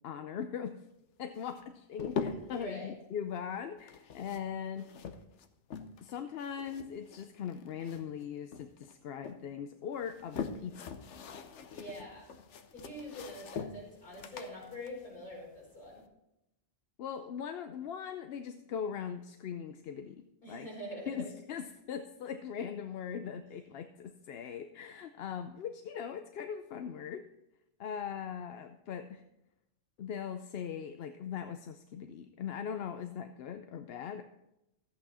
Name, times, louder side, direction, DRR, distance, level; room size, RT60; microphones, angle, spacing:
voice 1, 0.0-0.9 1.2-4.9 6.0-10.9 17.0-20.7 21.1-27.3 27.8-29.2 30.0-34.2, left 8 dB, 65° left, 8 dB, 0.8 m, -40 dB
sound 1, 1.4-2.7 3.8-6.1 6.4-8.2 8.5-9.4 9.9-16.0, left 5 dB, 85° left, 1.1 m, -43 dB
voice 2, 2.5-2.9 11.7-12.3 12.7-16.0 20.4-21.3, equal, 50° left, -4 dB, 4.9 m, -44 dB
13.5 x 8.5 x 4.2 m, 0.89 s
omnidirectional pair, 1.2 m